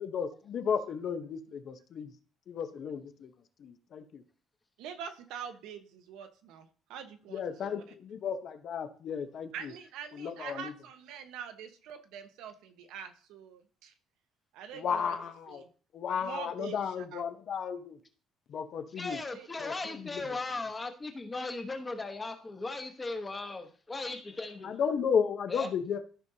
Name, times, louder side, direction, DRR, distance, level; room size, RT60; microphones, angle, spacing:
voice 1, 0.0-2.1 2.5-3.3 3.6-4.2 7.3-9.7 10.1-10.7 14.7-15.6 15.9-18.0 18.5-19.2 19.6-20.4 24.6-26.0, left 7 dB, 45° left, 0.8 m, -34 dB
voice 2, 4.8-7.7 9.5-13.9 14.5-15.2 15.5-15.6 16.2-17.2 19.1-19.7, right 8 dB, 85° right, 1.1 m, -45 dB
voice 3, 19.0-24.8 25.5-25.7, left 3 dB, 15° left, 1.1 m, -37 dB
13.5 x 5.3 x 2.8 m
cardioid pair, 150°, 0 cm